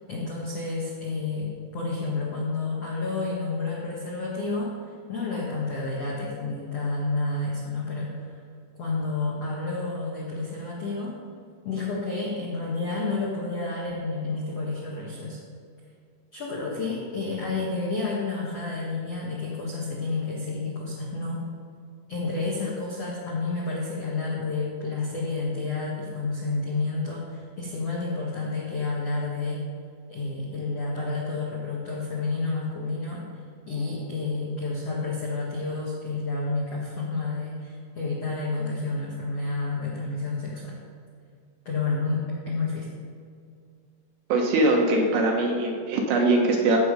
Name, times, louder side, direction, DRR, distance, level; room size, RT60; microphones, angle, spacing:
voice 1, 0.1-4.7 5.1-8.1 8.8-11.2 11.6-15.4 16.3-21.4 22.1-29.6 30.1-33.2 33.6-40.7 41.6-42.9, left 3 dB, 75° left, -5 dB, 1.4 m, -30 dB
voice 2, 44.3-46.8, right 2 dB, 70° right, 0 dB, 3.0 m, -22 dB
15.5 x 6.8 x 5.2 m, 2.3 s
omnidirectional pair, 5.7 m